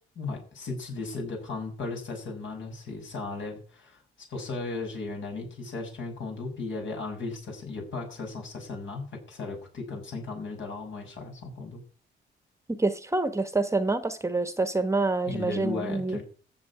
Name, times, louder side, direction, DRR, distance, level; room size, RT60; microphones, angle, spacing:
voice 1, 0.2-4.0 4.3-11.8 15.2-16.2, left 3 dB, 65° left, 6.6 m, -36 dB
voice 2, 12.7-16.2, right 3 dB, 15° right, 1.1 m, -27 dB
14.5 x 7.4 x 8.7 m
cardioid pair, 120°, 21 cm